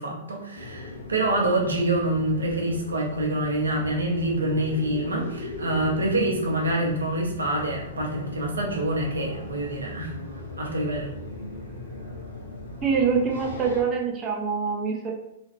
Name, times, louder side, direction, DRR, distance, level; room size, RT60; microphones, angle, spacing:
voice 1, 0.0-10.2 10.6-11.1, right 1 dB, 75° right, 0 dB, 0.7 m, -26 dB
sound 1, 0.5-13.8, left 1 dB, 75° left, 0.9 m, -38 dB
voice 2, 12.8-15.1, right 5 dB, 25° right, 0 dB, 0.5 m, -25 dB
2.9 x 2.4 x 2.9 m, 0.83 s
figure-of-eight pair, 110°, 0 cm